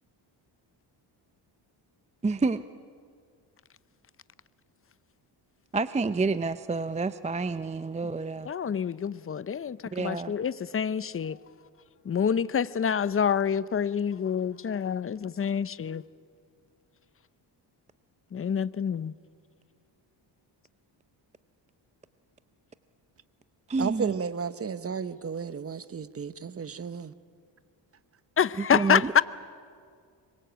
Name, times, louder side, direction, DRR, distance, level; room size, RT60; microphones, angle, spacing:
voice 1, 2.2-2.6 5.7-8.5 9.9-10.3 23.7-24.1 28.6-29.1, right 3 dB, 15° right, 0.5 m, -28 dB
voice 2, 8.5-11.4 12.1-16.0 18.3-19.1 28.4-29.2, left 7 dB, 30° left, 0.6 m, -27 dB
voice 3, 23.8-27.1, right 6 dB, 30° right, 0.9 m, -33 dB
25.5 x 23.0 x 8.0 m
cardioid pair, 95°, 45 cm